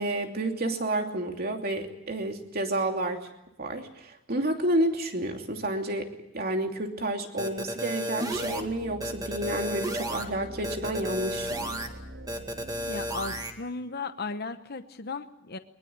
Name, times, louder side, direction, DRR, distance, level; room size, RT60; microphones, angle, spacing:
voice 1, 0.0-3.3 3.6-6.1 6.3-11.8, right 1 dB, 50° right, 4 dB, 2.9 m, -30 dB
sound 1, 7.4-8.6 9.0-10.2 10.6-11.9 12.3-13.5, equal, 20° right, 2.1 m, -33 dB
sound 2, 8.3-13.4, right 1 dB, 80° right, 2.9 m, -44 dB
voice 2, 12.9-15.6, left 4 dB, 55° left, 9 dB, 1.0 m, -36 dB
22.0 x 21.0 x 8.8 m, 0.85 s
head